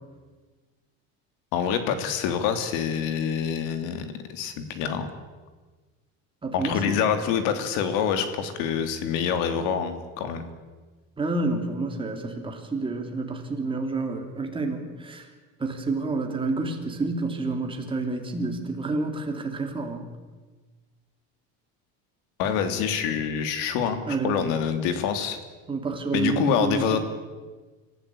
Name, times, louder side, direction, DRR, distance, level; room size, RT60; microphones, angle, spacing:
voice 1, 1.5-5.1 6.5-10.4 22.4-25.4 26.1-27.0, left 7 dB, 80° left, 9 dB, 3.0 m, -26 dB
voice 2, 6.4-7.0 11.2-15.3 15.6-20.1 24.1-24.4 25.7-27.0, right 3 dB, 15° right, 3 dB, 3.1 m, -29 dB
26.0 x 15.0 x 8.6 m, 1.3 s
cardioid pair, 150°, 31 cm